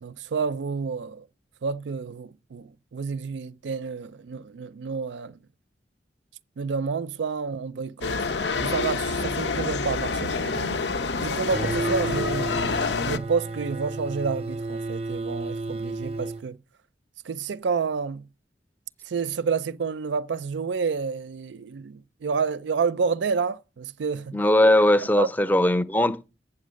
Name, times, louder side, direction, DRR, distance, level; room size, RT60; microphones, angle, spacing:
voice 1, 0.0-1.3 1.6-5.4 6.6-8.1 8.6-10.8 11.2-12.5 13.0-16.6 17.2-18.2 19.1-24.4 25.2-25.3, right 5 dB, 85° right, 0.4 m, -29 dB
sound 1, 8.0-13.2, left 4 dB, 75° left, 0.7 m, -27 dB
sound 2, 11.5-16.4, right 2 dB, 35° right, 0.6 m, -32 dB
voice 2, 24.3-26.3, left 1 dB, 10° left, 0.5 m, -20 dB
8.6 x 7.5 x 6.3 m
head